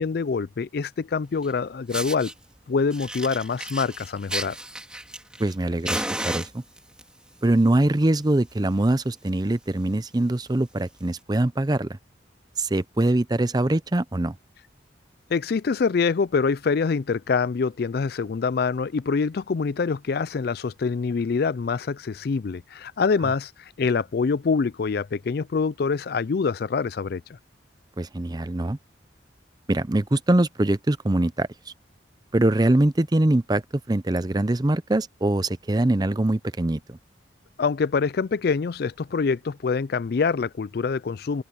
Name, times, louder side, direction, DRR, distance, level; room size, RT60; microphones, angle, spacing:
voice 1, 0.0-2.3 2.7-4.6 15.3-23.5 23.8-27.2 37.6-41.4, left 5 dB, 55° left, 0.4 m, -25 dB
Fire, 1.4-1.5 1.9-2.3 2.9-5.5 5.8-7.0 7.8-8.1 8.4-8.5 8.9-9.0 9.2-9.5 10.0-10.1 11.0-11.1, right 1 dB, 5° right, 2.9 m, -33 dB
voice 2, 5.4-6.6 7.4-11.9 12.6-14.4 28.0-28.8 29.7-31.7 32.3-37.0, right 1 dB, 20° right, 0.6 m, -23 dB
open air
head